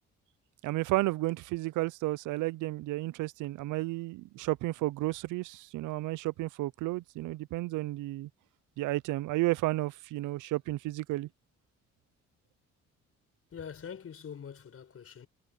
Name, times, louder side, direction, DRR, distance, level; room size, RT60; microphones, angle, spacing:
voice 1, 0.6-8.3 8.8-11.3, right 19 dB, 85° right, 0.6 m, -32 dB
voice 2, 13.5-15.3, left 7 dB, 50° left, 5.0 m, -44 dB
cardioid pair, 90°, 30 cm